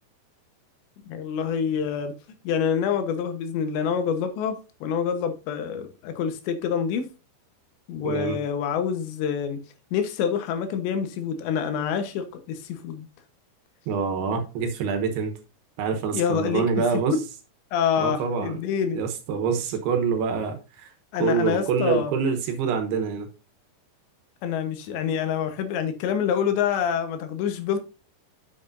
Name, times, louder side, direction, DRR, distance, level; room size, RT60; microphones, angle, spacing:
voice 1, 1.1-2.1 2.4-7.1 7.9-9.6 9.9-13.1 16.1-17.2 17.7-19.0 21.1-22.1 24.4-27.8, left 7 dB, 85° left, 3.4 m, -26 dB
voice 2, 8.0-8.4 13.9-15.3 15.8-17.2 18.0-18.6 18.9-20.9 21.2-23.3, right 6 dB, 75° right, 3.0 m, -26 dB
8.7 x 8.0 x 2.6 m
omnidirectional pair, 5.0 m